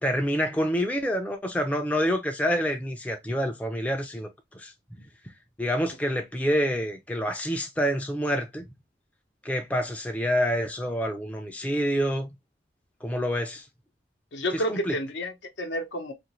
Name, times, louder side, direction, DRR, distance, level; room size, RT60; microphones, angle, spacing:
voice 1, 0.0-4.3 4.5-4.7 5.6-8.7 9.4-12.3 13.0-13.7 14.5-15.0, equal, 10° left, 0.3 m, -27 dB
voice 2, 14.3-16.1, equal, 75° left, 0.7 m, -30 dB
2.8 x 2.5 x 2.9 m
head